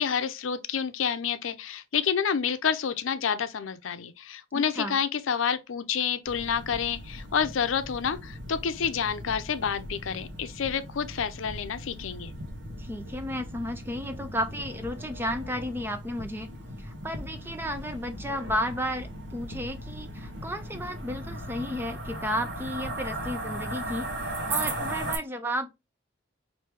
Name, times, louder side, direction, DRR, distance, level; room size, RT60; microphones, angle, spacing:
voice 1, 0.0-12.3, left 7 dB, 90° left, 0.5 m, -29 dB
voice 2, 4.5-5.0 12.8-16.5 16.8-24.1 24.5-25.7, equal, 10° right, 0.5 m, -33 dB
sound 1, 6.3-25.2, right 1 dB, 65° right, 1.0 m, -38 dB
4.5 x 2.7 x 3.3 m
head